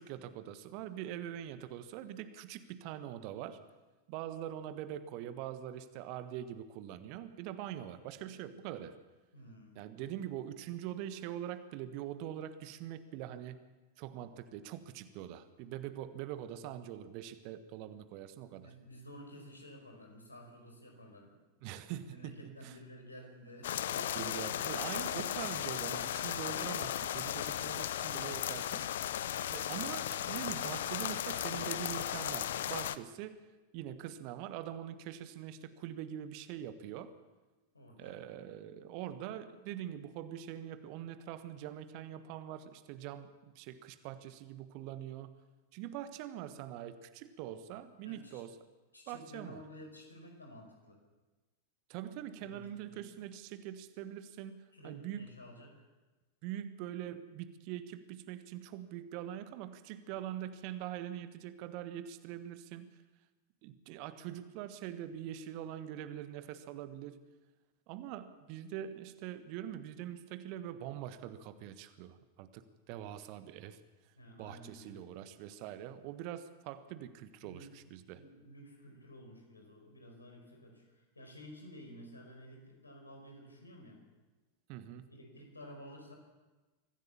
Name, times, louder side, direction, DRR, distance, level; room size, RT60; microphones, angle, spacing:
voice 1, 0.0-3.6 4.1-8.9 9.7-13.6 14.0-18.7 21.6-22.8 23.9-28.8 29.5-33.4 33.7-37.1 38.0-45.4 45.7-48.5 49.1-49.6 51.9-55.3 56.4-62.9 63.6-67.2 67.9-73.8 74.4-78.2 84.7-85.1, right 11 dB, 45° right, 12 dB, 1.4 m, -43 dB
voice 2, 9.3-9.8 18.5-21.4 22.0-24.9 37.7-38.2 48.0-48.4 48.9-51.0 52.4-53.1 54.7-55.8 74.2-75.1 77.4-77.7 78.0-84.1 85.1-86.1, equal, 80° left, 2 dB, 4.9 m, -52 dB
sound 1, 23.6-33.0, left 11 dB, 60° left, 0.7 m, -36 dB
24.0 x 15.0 x 7.2 m, 1.2 s
figure-of-eight pair, 90°, 0 cm